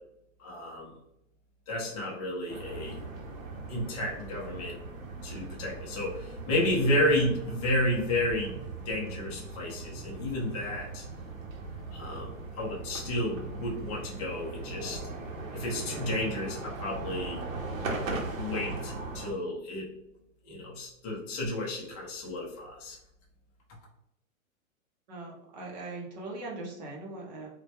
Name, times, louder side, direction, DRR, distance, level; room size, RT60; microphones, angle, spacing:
voice 1, 0.4-0.9 1.7-3.0 3.7-4.8 5.2-8.6 8.9-11.0 11.9-15.0 15.5-17.4 18.3-19.9 20.4-23.0, left 1 dB, 30° left, -3 dB, 0.5 m, -31 dB
sound 1, 2.5-19.3, right 3 dB, 75° right, 0.7 m, -39 dB
voice 2, 25.1-27.5, right 2 dB, 35° right, -2 dB, 0.6 m, -40 dB
2.1 x 2.1 x 2.7 m, 0.81 s
hypercardioid pair, 150°, 41 cm